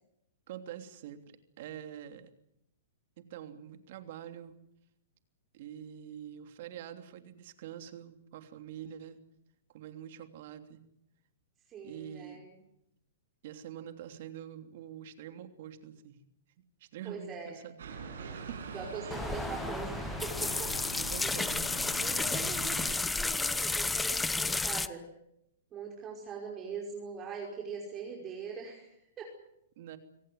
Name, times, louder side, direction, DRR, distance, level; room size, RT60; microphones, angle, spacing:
voice 1, 0.5-2.3 3.2-4.6 5.5-9.2 9.7-10.8 11.8-12.4 13.4-16.2 16.8-18.6 19.0-19.3 21.0-21.5 29.8-30.0, right 10 dB, 55° right, 7 dB, 3.1 m, -46 dB
voice 2, 11.7-12.6 17.1-17.7 18.7-21.5 22.0-25.1 25.7-29.3, right 5 dB, 25° right, 0 dB, 5.2 m, -42 dB
sound 1, 17.8-22.9, right 5 dB, 80° right, 7.5 m, -43 dB
sound 2, 19.1-24.9, left 3 dB, 10° left, 0.8 m, -32 dB
26.0 x 17.5 x 9.5 m, 0.81 s
hypercardioid pair, 135°, 0 cm